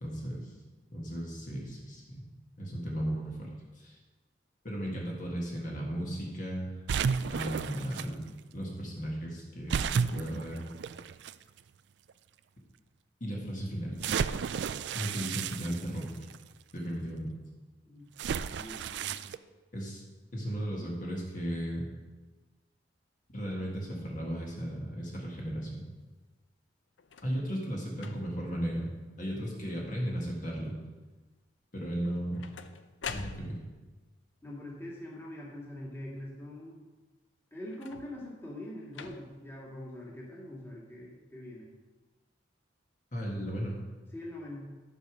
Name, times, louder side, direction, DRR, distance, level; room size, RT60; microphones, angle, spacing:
voice 1, 0.0-0.5 0.9-2.2 2.6-3.5 3.8-4.0 4.6-6.7 7.3-8.2 8.5-10.6 13.2-14.0 14.9-16.1 16.7-17.3 19.7-20.0 20.3-21.9 23.3-25.8 27.2-28.9 29.2-30.7 31.7-32.4 33.1-33.6 43.1-43.8, equal, 45° left, -2 dB, 1.8 m, -35 dB
sound 1, 6.9-8.1 9.7-11.3 12.1-12.2 14.0-16.4 18.2-19.4, right 6 dB, 65° right, 0.3 m, -32 dB
voice 2, 18.5-19.2 34.4-36.8 37.5-41.7 44.1-44.7, left 1 dB, 15° left, -4 dB, 1.9 m, -43 dB
sound 2, 27.0-27.4 27.9-28.5 29.1-29.5 29.7-30.3 32.0-33.9 37.7-38.3 38.9-39.5 40.3-40.4, left 5 dB, 80° left, 0.6 m, -45 dB
12.0 x 5.0 x 6.2 m, 1.3 s
head